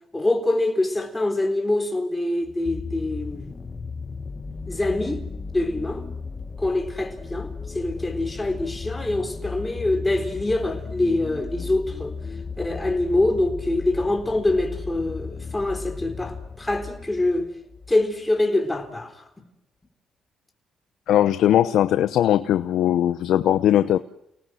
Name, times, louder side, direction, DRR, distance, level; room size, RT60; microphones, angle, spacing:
voice 1, 0.1-3.5 4.7-5.2 5.5-6.0 6.6-12.1 12.6-17.5 17.9-19.2, left 2 dB, 15° left, 4.0 m, -25 dB
sound 1, 2.4-18.0 18.8-18.9, left 4 dB, 30° left, 1.9 m, -35 dB
voice 2, 21.1-24.0, left 11 dB, 80° left, 0.9 m, -19 dB
30.0 x 19.0 x 7.8 m
cardioid pair, 90°, 0 cm